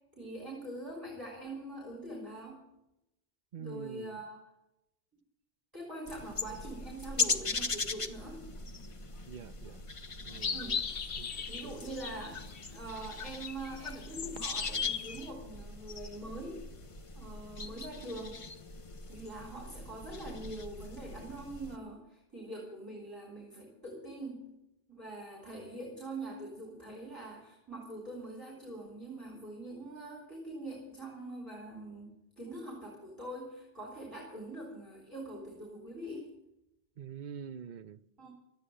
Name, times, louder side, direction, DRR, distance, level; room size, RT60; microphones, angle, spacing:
voice 1, 0.1-2.6 3.6-4.4 5.7-8.4 10.5-10.8 11.5-12.4 12.7-16.6 17.1-18.4 19.1-24.4 24.9-32.1 32.4-36.3 38.2-38.3, right 1 dB, 20° right, 3.5 m, -43 dB
voice 2, 3.5-4.2 9.3-9.8 10.2-10.6 11.2-11.8 37.0-38.0, right 7 dB, 50° right, 0.7 m, -45 dB
sound 1, 6.1-21.8, left 4 dB, 30° left, 0.8 m, -40 dB
sound 2, 10.3-12.8 13.0-15.3, left 6 dB, 60° left, 1.1 m, -38 dB
13.0 x 9.1 x 9.8 m
omnidirectional pair, 1.1 m